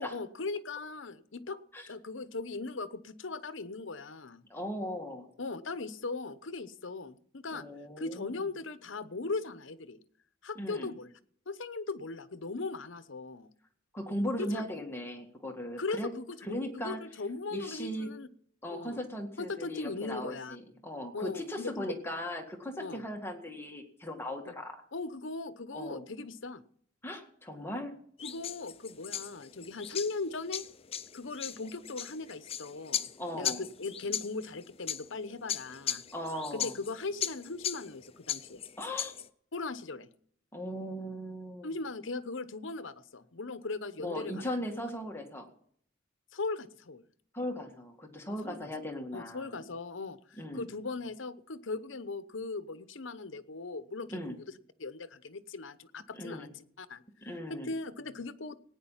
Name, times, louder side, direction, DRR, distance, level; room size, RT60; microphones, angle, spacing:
voice 1, 0.0-1.6 1.9-4.4 5.4-7.6 8.0-10.0 10.4-11.1 11.5-13.5 14.4-14.9 15.8-18.3 18.7-19.0 19.4-20.6 21.1-21.9 22.8-23.0 24.4-24.5 24.9-26.6 28.2-30.6 31.1-33.1 33.3-36.0 36.5-38.6 39.5-40.1 41.6-44.5 46.3-47.0 48.3-48.7 49.1-54.5 54.8-58.6, left 3 dB, 65° left, 13 dB, 0.9 m, -39 dB
voice 2, 4.5-5.3 7.5-8.4 10.6-10.9 13.9-16.1 16.4-17.0 17.5-18.1 18.6-24.8 25.7-26.0 27.0-27.9 33.2-33.6 36.1-36.7 38.8-39.1 40.5-41.7 44.0-45.5 47.3-49.6 50.4-50.7 54.1-54.4 56.1-56.5 57.2-57.7, equal, 10° left, 3 dB, 1.9 m, -38 dB
sound 1, 28.2-39.3, left 9 dB, 30° left, 0.6 m, -38 dB
17.5 x 9.7 x 5.7 m, 0.62 s
head